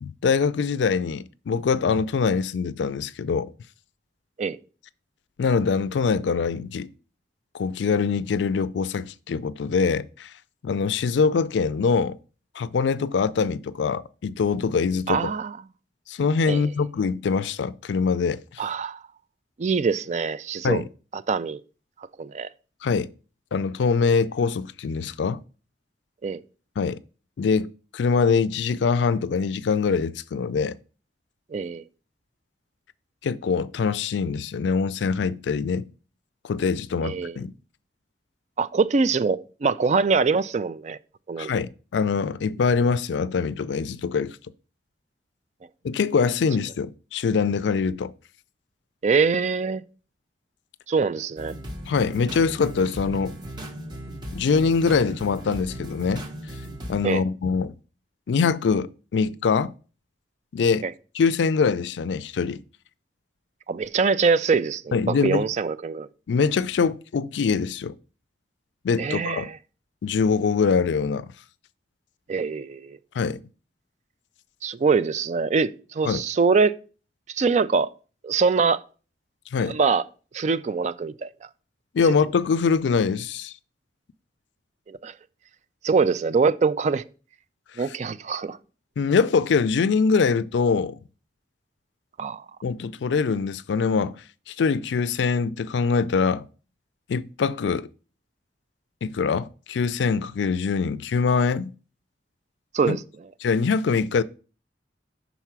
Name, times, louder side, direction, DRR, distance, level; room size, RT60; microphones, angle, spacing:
voice 1, 0.0-3.5 5.4-6.9 7.5-10.3 10.6-12.2 12.6-15.3 16.1-18.6 20.6-20.9 22.8-23.1 23.5-25.4 26.8-27.0 27.4-30.7 33.2-35.9 36.4-37.5 41.4-44.4 45.8-48.1 51.9-53.4 54.3-56.2 56.9-57.8 58.3-59.7 60.5-60.8 61.1-62.6 64.9-65.4 66.3-67.9 68.8-69.5 70.0-71.3 73.1-73.4 76.0-76.2 79.5-79.8 81.9-83.5 89.0-91.0 92.6-94.2 94.5-96.4 97.1-97.9 99.0-101.7 102.9-103.0 103.4-104.2, left 5 dB, 85° left, 0.4 m, -23 dB
voice 2, 15.1-15.6 16.5-16.6 18.6-19.0 19.6-20.8 21.1-21.6 22.2-22.5 26.2-26.4 31.5-31.8 37.0-37.4 38.6-41.0 41.3-41.5 49.0-49.8 50.9-51.5 57.0-57.2 60.8-60.9 63.7-66.1 69.0-69.6 72.3-73.0 74.6-76.7 77.3-77.9 78.2-78.8 79.7-80.0 80.3-81.3 84.9-85.1 85.8-87.0 87.8-88.6 92.2-92.4 102.7-103.0, right 5 dB, 40° right, 0.4 m, -23 dB
sound 1, 51.4-57.0, equal, 25° right, 1.1 m, -37 dB
5.6 x 4.1 x 5.9 m
head